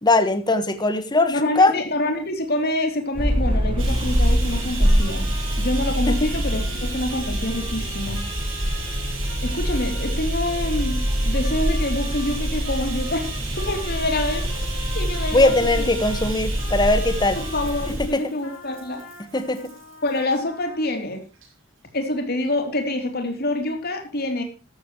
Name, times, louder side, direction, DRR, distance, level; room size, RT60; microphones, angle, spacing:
voice 1, 0.0-1.7 6.1-6.3 15.3-17.4 17.9-18.2 19.2-19.7, left 2 dB, 20° left, 10 dB, 1.3 m, -20 dB
voice 2, 1.3-5.3 5.6-8.2 9.4-14.5 14.9-15.5 15.8-15.9 17.3-19.0 20.0-21.2 21.9-24.4, left 1 dB, 50° left, 5 dB, 3.2 m, -26 dB
sound 1, 3.1-18.1, equal, 25° right, 1.4 m, -25 dB
Bathtub (filling or washing), 3.8-20.4 21.3-21.5 21.8-21.9, right 4 dB, 80° right, 7.0 m, -36 dB
Trumpet, 4.8-17.9 18.4-20.9, left 4 dB, 75° left, 2.6 m, -43 dB
13.5 x 13.5 x 3.1 m, 0.32 s
head